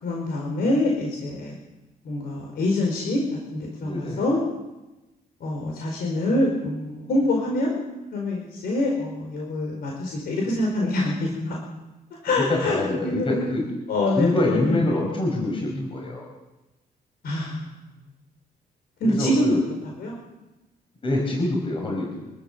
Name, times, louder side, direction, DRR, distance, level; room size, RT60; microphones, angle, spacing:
voice 1, 0.0-1.5 2.0-3.2 3.5-4.4 5.4-7.7 8.1-11.6 12.2-13.4 13.9-14.8 17.2-17.7 19.0-19.6 19.8-20.1, left 1 dB, 75° left, -1 dB, 4.9 m, -25 dB
voice 2, 3.8-4.2 12.3-13.7 14.1-16.2 19.0-19.6 21.0-22.3, left 1 dB, 35° left, 0 dB, 5.0 m, -25 dB
25.0 x 14.0 x 7.5 m, 1.0 s
cardioid pair, 145°, 16 cm